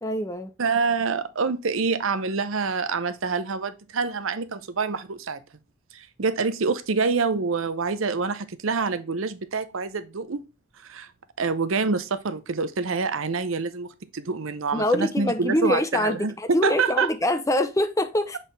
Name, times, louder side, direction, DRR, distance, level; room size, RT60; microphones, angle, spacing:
voice 1, 0.0-0.5 14.7-18.4, left 1 dB, 15° left, 0.6 m, -24 dB
voice 2, 0.6-5.4 5.9-10.4 10.8-11.1 11.4-16.3 16.6-17.1, right 4 dB, 75° right, 0.7 m, -26 dB
7.3 x 4.2 x 3.3 m
head